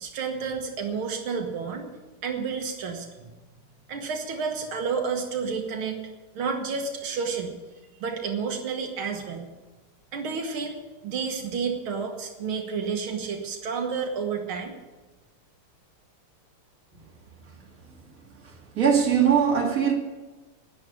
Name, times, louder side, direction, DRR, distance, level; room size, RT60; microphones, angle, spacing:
voice 1, 0.0-1.9 2.2-3.1 3.9-6.0 6.4-7.5 8.0-9.5 10.1-10.8 11.0-14.8, right 5 dB, 85° right, 2.2 m, -30 dB
voice 2, 18.4-19.9, right 7 dB, 40° right, 2.5 m, -21 dB
11.0 x 9.6 x 8.4 m
omnidirectional pair, 2.3 m